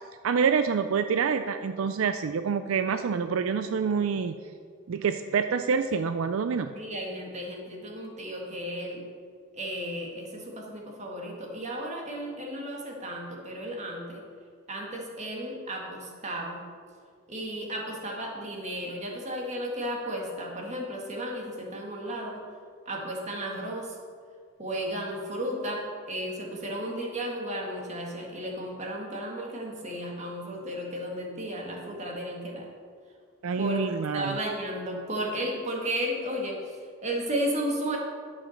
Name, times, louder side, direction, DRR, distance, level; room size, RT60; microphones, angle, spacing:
voice 1, 0.2-4.4 4.9-6.7 33.4-34.4, right 6 dB, 75° right, 9 dB, 0.4 m, -27 dB
voice 2, 6.7-9.0 9.5-14.2 14.7-16.6 17.3-22.4 22.9-24.0 24.6-32.7 33.6-38.0, equal, 35° right, -1 dB, 2.0 m, -34 dB
11.0 x 6.3 x 6.5 m, 2.1 s
head